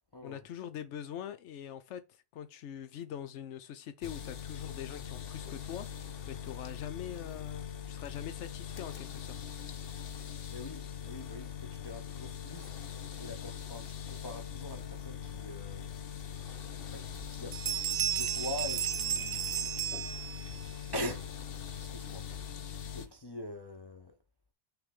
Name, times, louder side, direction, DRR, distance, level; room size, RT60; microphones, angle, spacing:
voice 1, 0.2-9.4, left 9 dB, 90° left, 1.0 m, -43 dB
sound 1, 4.0-23.1, left 8 dB, 60° left, 1.0 m, -42 dB
voice 2, 10.5-12.7 13.2-15.9 16.9-17.6 17.9-19.7 20.9-21.3 21.8-22.3 22.9-24.2, left 1 dB, 30° left, 0.6 m, -43 dB
sound 2, 16.5-16.6 17.0-17.3 17.5-20.7, right 9 dB, 55° right, 0.5 m, -33 dB
5.9 x 3.3 x 5.4 m
omnidirectional pair, 1.2 m